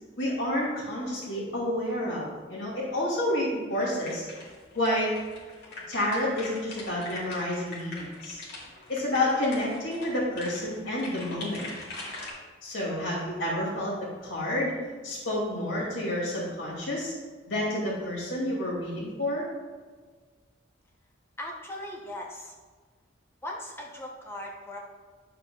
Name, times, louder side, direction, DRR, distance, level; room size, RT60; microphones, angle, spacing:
voice 1, 0.2-4.2 4.7-5.2 5.9-8.4 8.9-11.7 12.6-13.9 14.2-14.8 15.0-17.1 17.5-19.5, left 1 dB, 70° left, -5 dB, 2.3 m, -29 dB
sound 1, 3.7-12.3, left 2 dB, 55° left, 2.4 m, -43 dB
voice 2, 21.4-22.5 23.4-24.8, left 1 dB, 10° left, -1 dB, 0.7 m, -38 dB
11.0 x 6.9 x 2.3 m, 1.5 s
head